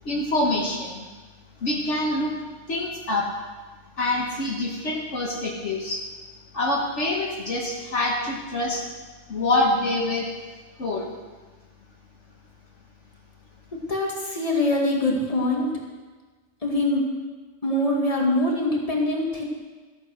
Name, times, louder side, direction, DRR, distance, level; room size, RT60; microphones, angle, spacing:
voice 1, 0.0-1.1 1.6-2.3 2.7-3.3 4.0-6.0 6.5-8.8 9.3-10.3 10.8-11.1, left 2 dB, 65° left, -1 dB, 1.7 m, -25 dB
voice 2, 13.9-15.7 16.6-17.0 17.6-19.4, left 1 dB, 25° left, -1 dB, 2.2 m, -23 dB
13.5 x 8.5 x 6.4 m, 1.3 s
omnidirectional pair, 1.3 m